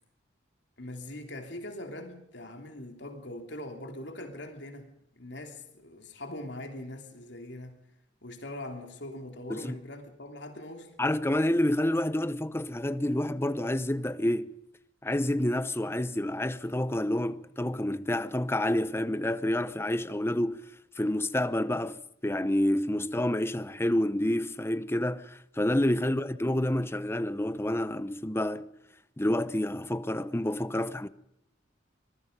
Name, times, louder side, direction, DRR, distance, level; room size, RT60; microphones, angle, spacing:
voice 1, 0.8-4.9 5.2-7.8 8.2-10.9, left 1 dB, 65° left, 3.2 m, -42 dB
voice 2, 11.0-14.5 15.0-20.6 21.0-28.7 29.2-31.1, left 1 dB, 15° left, 0.8 m, -28 dB
25.0 x 21.0 x 5.3 m
head